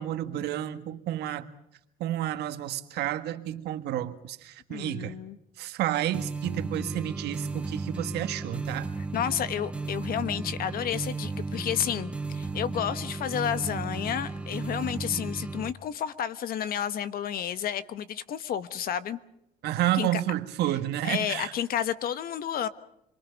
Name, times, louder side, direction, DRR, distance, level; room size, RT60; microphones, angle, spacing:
voice 1, 0.0-1.5 2.0-5.2 5.6-8.9 19.6-21.5, right 13 dB, 75° right, 1.7 m, -30 dB
voice 2, 4.7-5.4 9.1-19.2 19.9-20.2 21.0-22.7, left 9 dB, 60° left, 1.4 m, -31 dB
sound 1, 6.1-15.7, right 3 dB, 5° right, 1.4 m, -34 dB
28.5 x 23.0 x 5.3 m
cardioid pair, 110°, 17 cm